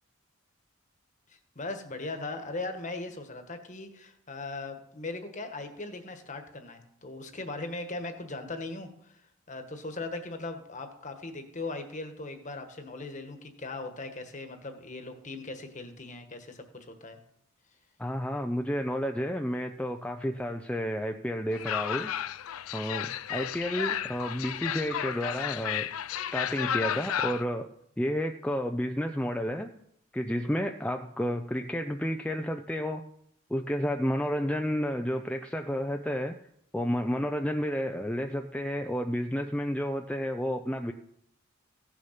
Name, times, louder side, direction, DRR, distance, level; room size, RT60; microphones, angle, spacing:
voice 1, 1.3-9.1 9.5-17.2, left 2 dB, 35° left, 6 dB, 1.3 m, -39 dB
voice 2, 18.0-22.1 22.7-25.9 26.3-27.7 28.0-29.7 30.1-33.0 33.5-36.3 36.7-40.9, equal, 5° left, 4 dB, 0.4 m, -31 dB
sound 1, 21.5-27.4, left 10 dB, 85° left, 0.4 m, -33 dB
16.0 x 6.3 x 5.8 m, 0.72 s
head